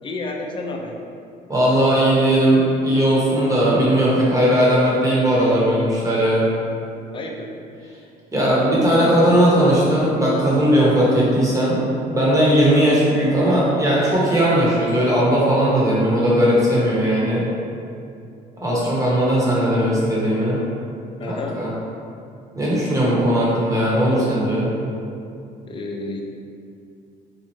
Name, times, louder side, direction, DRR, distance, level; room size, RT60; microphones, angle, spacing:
voice 1, 0.0-1.0 7.1-7.5 21.2-21.6 25.7-26.2, left 2 dB, 30° left, 0 dB, 0.5 m, -30 dB
voice 2, 1.5-6.5 8.3-11.8 12.1-17.4 18.6-20.6 21.3-21.7 22.6-24.7, right 1 dB, 20° right, -6 dB, 1.1 m, -18 dB
4.2 x 2.4 x 3.1 m, 2.5 s
cardioid pair, 110°, 17 cm